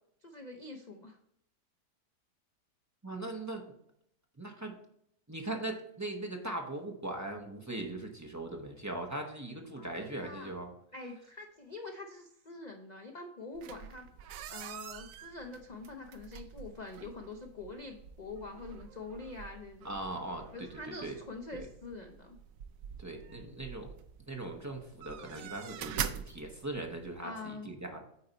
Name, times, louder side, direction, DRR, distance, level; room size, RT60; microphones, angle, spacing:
voice 1, 0.2-1.2 9.7-10.5 10.9-19.9 20.5-22.4 27.2-27.7, left 3 dB, 70° left, 3 dB, 0.4 m, -45 dB
voice 2, 3.0-3.8 4.4-4.8 5.3-10.7 19.8-21.2 21.5-21.7 23.0-23.9 24.3-28.0, right 2 dB, 15° right, 2 dB, 0.6 m, -40 dB
sound 1, 13.5-27.2, right 9 dB, 70° right, 0.8 m, -45 dB
8.6 x 4.2 x 3.9 m, 0.72 s
omnidirectional pair, 1.7 m